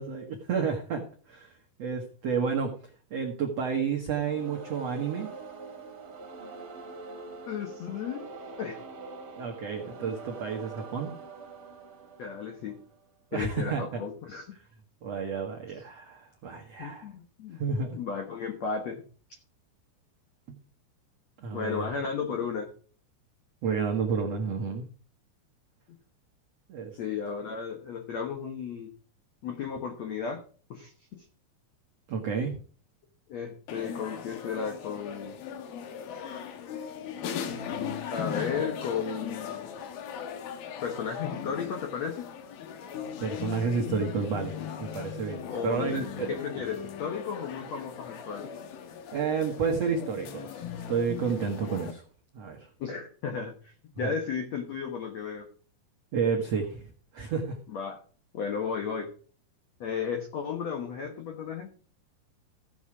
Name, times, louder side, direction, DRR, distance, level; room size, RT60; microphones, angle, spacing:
voice 1, 0.0-2.7 3.1-5.3 9.4-11.1 13.3-14.0 15.0-17.1 17.6-18.0 21.4-21.9 23.6-24.9 26.7-27.0 32.1-32.6 43.2-46.3 49.1-52.0 52.3-52.7 54.0-54.1 56.1-56.9 57.1-57.6, right 5 dB, 85° right, 1 dB, 1.4 m, -31 dB
sound 1, 4.1-13.0, right 4 dB, 40° right, 2.2 m, -44 dB
voice 2, 7.5-8.3 8.6-8.8 12.2-12.8 13.3-14.5 16.8-17.6 17.9-19.0 21.5-22.7 27.0-28.9 29.4-30.4 30.7-31.2 33.3-35.4 38.1-39.7 40.8-42.3 45.4-48.5 52.8-55.5 57.7-58.0 58.3-59.1 59.8-61.7, left 6 dB, 90° left, 4 dB, 1.5 m, -34 dB
sound 2, 33.7-51.9, left 8 dB, 70° left, 2.8 m, -38 dB
15.0 x 7.1 x 4.9 m, 0.42 s
omnidirectional pair, 5.2 m